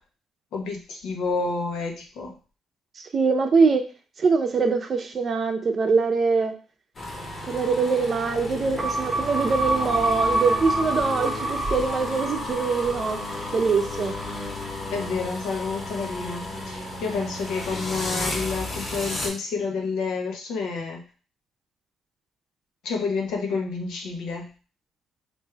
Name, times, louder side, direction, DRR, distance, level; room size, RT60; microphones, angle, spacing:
voice 1, 0.5-2.3 14.9-21.0 22.8-24.5, left 4 dB, 85° left, 1 dB, 0.9 m, -29 dB
voice 2, 3.1-3.8 4.2-6.5 7.5-13.2 13.5-14.1, right 4 dB, 45° right, 5 dB, 0.6 m, -23 dB
sound 1, 6.9-19.3, left 2 dB, 35° left, 1.1 m, -33 dB
sound 2, 8.8-15.1, right 1 dB, 15° right, 0.9 m, -28 dB
3.2 x 2.6 x 3.3 m, 0.35 s
cardioid pair, 90°, 0 cm